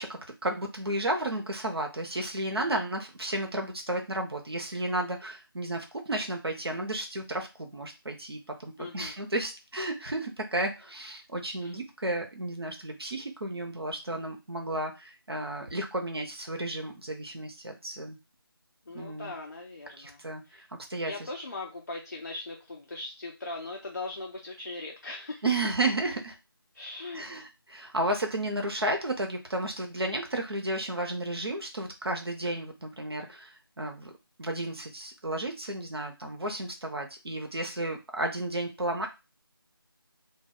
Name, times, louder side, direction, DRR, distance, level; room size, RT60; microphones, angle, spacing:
voice 1, 0.0-18.2 18.9-19.3 20.0-21.3 25.4-26.4 27.1-34.1 34.4-39.1, right 1 dB, 85° right, 2 dB, 0.6 m, -33 dB
voice 2, 8.8-9.1 11.6-11.8 18.9-20.2 20.5-20.6 21.0-25.5 26.7-27.4, left 2 dB, 45° left, 0 dB, 0.5 m, -39 dB
2.2 x 2.2 x 3.4 m, 0.26 s
figure-of-eight pair, 165°, 13 cm